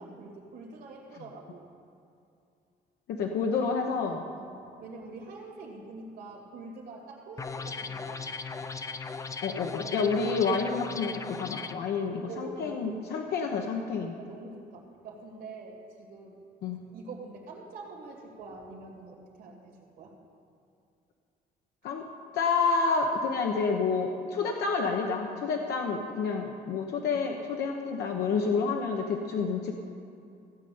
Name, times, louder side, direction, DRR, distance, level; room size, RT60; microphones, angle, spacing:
voice 1, 0.0-1.7 4.4-8.2 12.3-13.2 14.2-16.4 16.9-20.1 29.4-29.5, right 3 dB, 75° right, -1 dB, 2.4 m, -45 dB
voice 2, 3.1-4.2 9.4-14.1 16.6-16.8 21.8-22.0 22.3-29.8, left 5 dB, 80° left, 2 dB, 0.9 m, -29 dB
sound 1, 7.4-11.8, left 4 dB, 20° left, 0.5 m, -38 dB
15.5 x 5.5 x 8.6 m, 2.5 s
cardioid pair, 135°, 17 cm